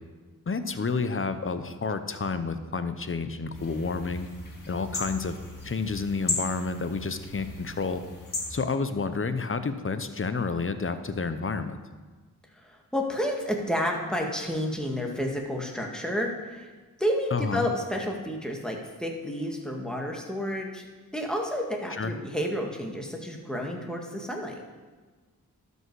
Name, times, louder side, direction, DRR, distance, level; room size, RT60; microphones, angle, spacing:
voice 1, 0.5-4.3 4.7-5.3 5.6-8.0 8.5-11.8 17.3-17.6 22.0-22.1, left 4 dB, 35° left, 10 dB, 0.8 m, -30 dB
sound 1, 3.5-8.5, left 2 dB, 60° left, 1.8 m, -36 dB
voice 2, 12.5-16.7 17.0-20.9 21.1-24.6, equal, ahead, 0 dB, 1.8 m, -30 dB
12.0 x 5.5 x 4.7 m, 1.4 s
cardioid pair, 45°, 36 cm